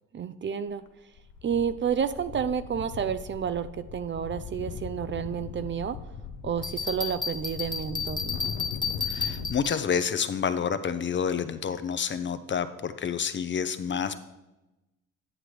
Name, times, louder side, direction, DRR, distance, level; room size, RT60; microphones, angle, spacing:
voice 1, 0.1-0.8 1.4-6.0 6.4-8.4, right 7 dB, 40° right, 12 dB, 0.5 m, -30 dB
sound 1, 0.7-0.9 1.2-9.6, left 6 dB, 85° left, 0.7 m, -40 dB
Bell, 6.6-10.0, left 5 dB, 15° left, 0.9 m, -32 dB
voice 2, 9.0-14.1, left 7 dB, 40° left, 11 dB, 0.6 m, -29 dB
10.0 x 7.6 x 3.2 m, 0.98 s
cardioid pair, 90°, 30 cm